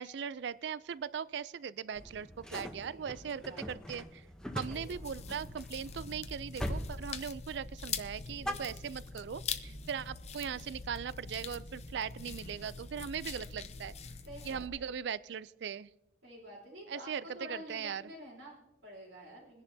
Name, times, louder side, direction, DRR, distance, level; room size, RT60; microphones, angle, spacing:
voice 1, 0.0-4.2 4.5-13.9 14.4-15.9 16.9-18.0, right 7 dB, 65° right, 18 dB, 0.3 m, -39 dB
sound 1, 1.9-6.2 6.6-7.0 7.2-7.7 8.0-9.3, equal, 5° left, 0.7 m, -42 dB
voice 2, 2.6-3.9 4.7-5.3 14.3-14.9 16.2-19.6, equal, 90° right, -9 dB, 3.6 m, -50 dB
sound 2, 4.7-14.7, left 5 dB, 35° left, 0.6 m, -43 dB
22.0 x 10.5 x 2.7 m, 0.93 s
head